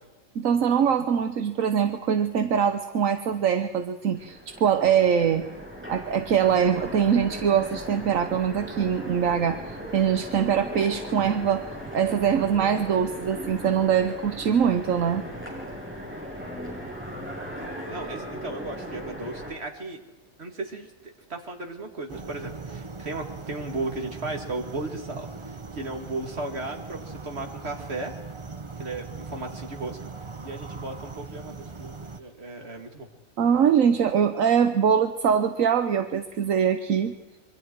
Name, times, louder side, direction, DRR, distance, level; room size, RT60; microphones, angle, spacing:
voice 1, 0.3-5.4 5.9-11.7 11.9-15.2 33.4-37.1, right 8 dB, 75° right, 8 dB, 1.3 m, -23 dB
Train, 4.1-19.5, equal, 10° right, 6.5 m, -38 dB
voice 2, 17.9-20.0 20.4-28.1 28.8-30.0 30.4-33.1, right 2 dB, 50° right, 3 dB, 2.7 m, -35 dB
sound 1, 22.1-32.2, right 4 dB, 25° right, 0.8 m, -40 dB
26.5 x 23.5 x 4.7 m, 1.1 s
omnidirectional pair, 1.4 m